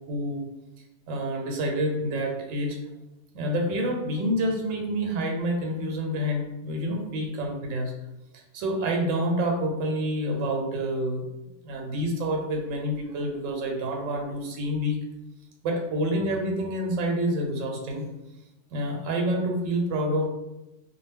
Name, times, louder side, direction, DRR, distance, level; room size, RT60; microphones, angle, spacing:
voice 1, 0.1-0.5 1.1-2.8 3.3-7.9 8.3-11.3 11.6-15.0 15.6-18.0 18.7-20.3, equal, 85° right, 1 dB, 1.0 m, -28 dB
2.1 x 2.0 x 3.4 m, 0.97 s
omnidirectional pair, 1.3 m